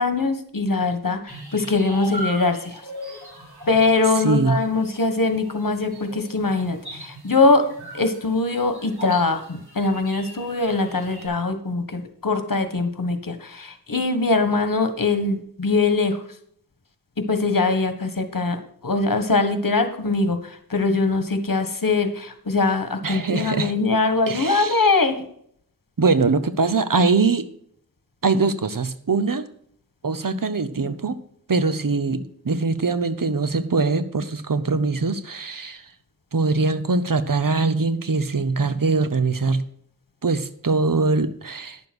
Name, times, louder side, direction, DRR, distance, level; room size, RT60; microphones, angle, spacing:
voice 1, 0.0-2.6 3.7-7.6 7.9-16.2 17.3-25.1, left 3 dB, 60° left, 8 dB, 1.6 m, -22 dB
sound 1, 1.3-11.3, equal, 85° right, 3.8 m, -39 dB
voice 2, 4.1-4.6 23.0-23.7 24.3-25.0 26.0-27.5 28.2-29.5 30.0-31.2 31.5-35.9 36.3-39.7 40.2-41.8, right 3 dB, 60° right, 12 dB, 0.9 m, -22 dB
10.5 x 7.0 x 6.2 m, 0.65 s
wide cardioid pair, 50°, 37 cm